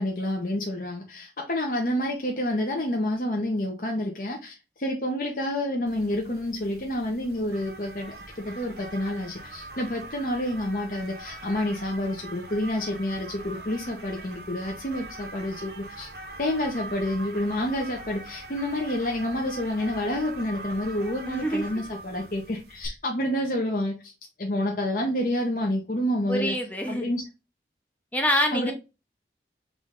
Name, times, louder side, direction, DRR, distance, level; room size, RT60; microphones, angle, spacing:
voice 1, 0.0-8.1 8.5-16.1 16.4-24.1 24.4-26.5 26.9-27.2 28.5-28.7, left 1 dB, 50° left, 0.9 m, -28 dB
sound 1, 5.9-22.9, right 2 dB, 65° right, 0.9 m, -42 dB
voice 2, 21.3-21.7 26.3-27.1 28.1-28.7, equal, 10° left, 0.6 m, -26 dB
3.9 x 3.2 x 3.6 m
head